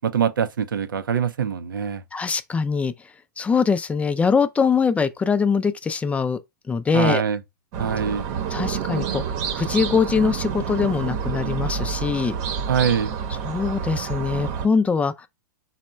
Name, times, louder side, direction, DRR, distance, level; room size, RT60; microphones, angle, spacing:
voice 1, 0.0-2.0 6.9-7.4 7.8-8.2 12.7-13.1, right 7 dB, 90° right, 0.6 m, -23 dB
voice 2, 2.1-2.9 3.4-6.4 6.7-7.2 8.5-9.2 9.5-12.4 13.4-15.3, left 5 dB, 10° left, 0.4 m, -22 dB
sound 1, 7.7-14.7, right 7 dB, 50° right, 0.9 m, -28 dB
4.1 x 2.2 x 4.3 m
hypercardioid pair, 120°, 11 cm